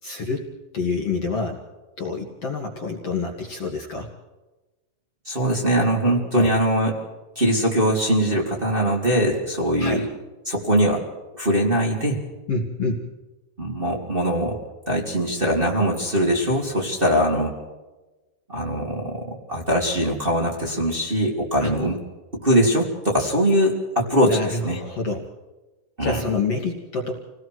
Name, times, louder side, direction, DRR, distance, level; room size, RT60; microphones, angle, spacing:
voice 1, 0.0-0.5 0.7-1.6 2.0-4.1 6.3-6.5 9.8-10.0 12.5-13.1 21.6-21.7 24.2-25.3 26.0-27.2, left 3 dB, 45° left, 0 dB, 2.9 m, -27 dB
voice 2, 5.2-7.0 7.3-10.1 10.4-11.0 11.3-12.2 13.6-14.6 14.9-17.5 18.5-22.0 22.3-24.8 26.0-26.2, equal, 15° right, -2 dB, 3.0 m, -22 dB
29.0 x 19.0 x 4.8 m, 1.1 s
omnidirectional pair, 4.5 m